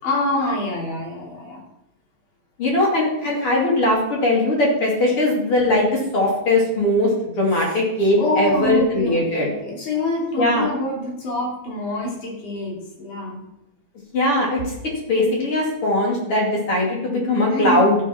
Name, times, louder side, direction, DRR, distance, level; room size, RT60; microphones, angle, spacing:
voice 1, 0.0-1.6 7.5-7.8 8.2-13.4 17.5-18.1, left 2 dB, 65° left, -2 dB, 4.4 m, -26 dB
voice 2, 2.6-9.5 10.4-10.7 14.1-14.7 15.1-18.0, left 1 dB, 40° left, -3 dB, 3.2 m, -20 dB
14.0 x 6.4 x 5.9 m, 0.86 s
omnidirectional pair, 4.0 m